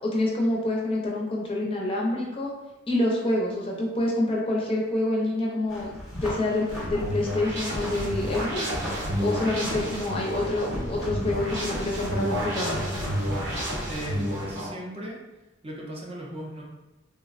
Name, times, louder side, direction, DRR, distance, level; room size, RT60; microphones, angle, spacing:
voice 1, 0.0-2.5 2.9-8.7 9.2-12.8, left 1 dB, 30° left, -2 dB, 0.5 m, -27 dB
sound 1, 5.7-13.9, equal, ahead, 0.9 m, -37 dB
sound 2, 6.7-14.7, equal, 60° right, 0.8 m, -30 dB
voice 2, 13.8-15.2 15.6-16.6, right 1 dB, 30° right, -3 dB, 0.5 m, -37 dB
3.4 x 2.1 x 2.4 m, 1.0 s
head